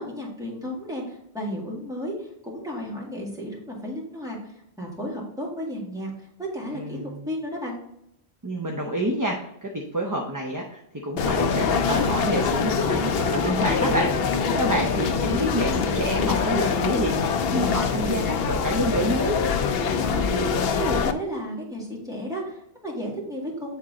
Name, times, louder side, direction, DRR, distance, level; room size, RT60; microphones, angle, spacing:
voice 1, 0.0-4.4 4.8-7.0 7.2-7.8 20.0-20.5 20.8-23.8, equal, 5° right, -3 dB, 1.9 m, -33 dB
voice 2, 6.7-7.2 8.4-9.4 9.6-19.4, right 1 dB, 20° right, 0 dB, 0.6 m, -28 dB
sound 1, 11.2-21.1, left 5 dB, 70° left, 0.8 m, -24 dB
7.9 x 3.7 x 3.7 m, 0.77 s
omnidirectional pair, 1.1 m